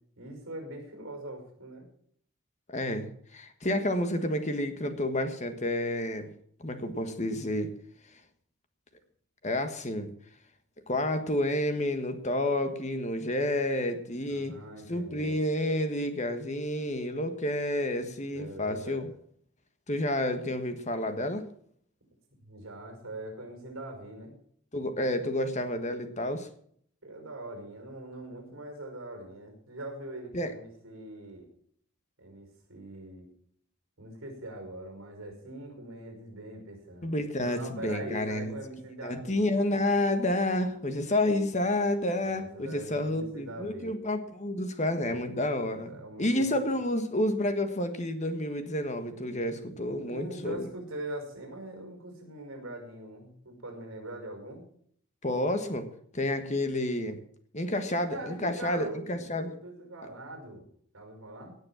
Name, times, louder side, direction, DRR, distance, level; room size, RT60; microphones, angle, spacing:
voice 1, 0.2-1.8 14.3-15.4 18.3-19.1 22.4-24.4 27.0-31.5 32.2-33.3 34.0-37.1 37.4-39.4 42.2-43.9 45.1-45.2 45.9-46.5 49.9-54.6 58.1-60.7 60.9-61.6, right 1 dB, 60° right, 4 dB, 5.5 m, -42 dB
voice 2, 2.7-6.3 6.6-7.7 9.4-10.1 10.9-14.6 14.9-19.1 19.9-21.5 24.7-26.5 30.3-30.5 37.0-38.6 39.0-50.7 55.2-55.9 56.1-57.2 57.5-59.5, left 1 dB, 30° left, 8 dB, 1.5 m, -30 dB
17.0 x 6.5 x 7.4 m, 0.62 s
head